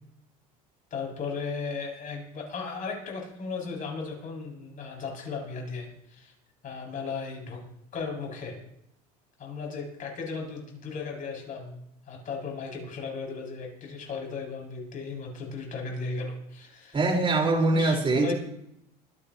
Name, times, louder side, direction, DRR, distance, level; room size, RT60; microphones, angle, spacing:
voice 1, 0.9-6.3 6.6-7.6 7.9-8.6 9.4-17.0 17.6-18.3, left 4 dB, 45° left, -1 dB, 7.6 m, -36 dB
voice 2, 16.9-18.3, right 2 dB, 30° right, 1 dB, 5.4 m, -23 dB
26.0 x 11.0 x 3.2 m, 0.78 s
supercardioid pair, 85°, 19 cm